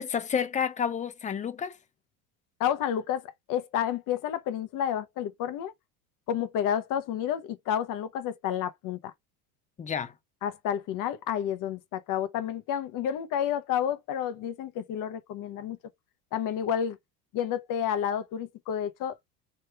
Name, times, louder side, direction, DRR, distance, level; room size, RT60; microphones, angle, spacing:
voice 1, 0.0-1.8 9.8-10.1, left 7 dB, 15° left, 0.5 m, -30 dB
voice 2, 2.6-5.7 6.3-9.1 10.4-15.8 16.3-17.0 17.3-19.2, left 9 dB, 45° left, 0.9 m, -30 dB
3.2 x 3.2 x 3.3 m
hypercardioid pair, 90°, 45 cm